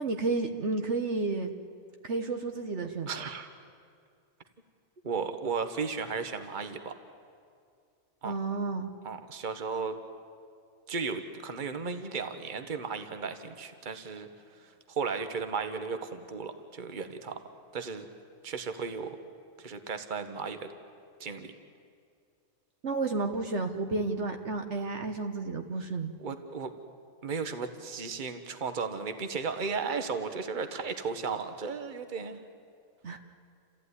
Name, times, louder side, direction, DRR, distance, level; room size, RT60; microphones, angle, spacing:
voice 1, 0.0-1.5 2.0-3.1 8.2-8.9 22.8-26.1 33.0-33.2, right 3 dB, 60° right, 5 dB, 1.4 m, -31 dB
voice 2, 3.1-3.5 5.0-6.9 8.2-8.3 9.0-10.0 10.9-14.3 14.9-17.4 17.7-18.1 18.4-19.2 19.6-20.7 21.2-21.5 26.2-26.7 27.2-32.4, right 5 dB, 40° right, 8 dB, 1.4 m, -35 dB
29.0 x 14.5 x 9.8 m, 2.3 s
omnidirectional pair, 1.3 m